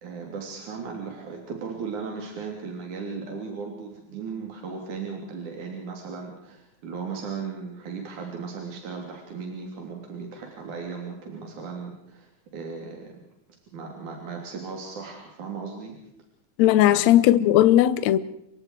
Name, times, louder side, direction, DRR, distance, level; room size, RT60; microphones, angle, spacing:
voice 1, 0.0-13.2 13.7-16.0 16.8-17.0, right 5 dB, 75° right, 4.5 m, -36 dB
voice 2, 16.6-18.2, left 13 dB, 70° left, 2.1 m, -17 dB
28.0 x 24.0 x 4.7 m
omnidirectional pair, 3.5 m